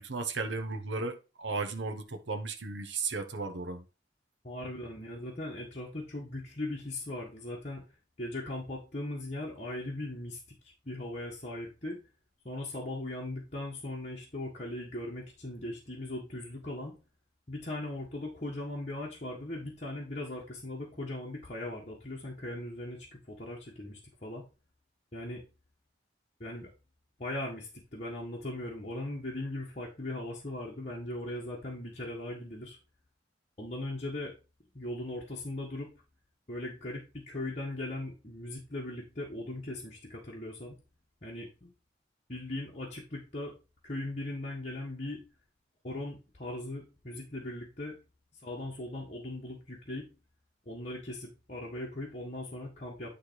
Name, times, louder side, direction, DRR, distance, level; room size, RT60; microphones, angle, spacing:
voice 1, 0.0-3.8, right 3 dB, 85° right, 1.0 m, -35 dB
voice 2, 4.4-7.8 8.2-10.4 10.8-12.0 12.4-16.9 17.5-24.4 25.1-25.4 26.4-26.7 27.2-32.8 33.6-34.3 34.7-35.9 36.5-40.7 41.2-41.7 42.3-43.5 43.8-45.2 45.8-48.0 48.4-50.0 50.6-53.1, left 1 dB, 40° left, 1.7 m, -39 dB
10.0 x 3.4 x 4.7 m
head